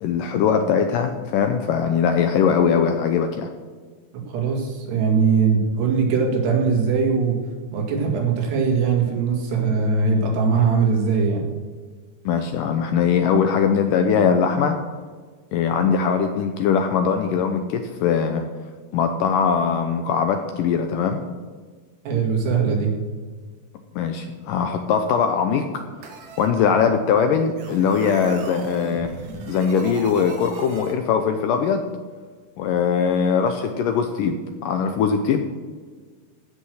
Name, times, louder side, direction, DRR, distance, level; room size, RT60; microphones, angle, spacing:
voice 1, 0.0-3.5 12.3-14.8 15.5-18.4 18.9-21.2 24.0-25.7 26.4-29.1 29.5-31.9 32.6-35.4, left 6 dB, 80° left, 6 dB, 2.0 m, -21 dB
voice 2, 4.1-7.4 7.7-11.4 22.1-23.0, right 5 dB, 90° right, 0 dB, 4.3 m, -21 dB
sound 1, 26.0-26.5 27.6-30.9, right 3 dB, 60° right, 2.8 m, -37 dB
16.0 x 6.3 x 6.4 m, 1.5 s
omnidirectional pair, 4.7 m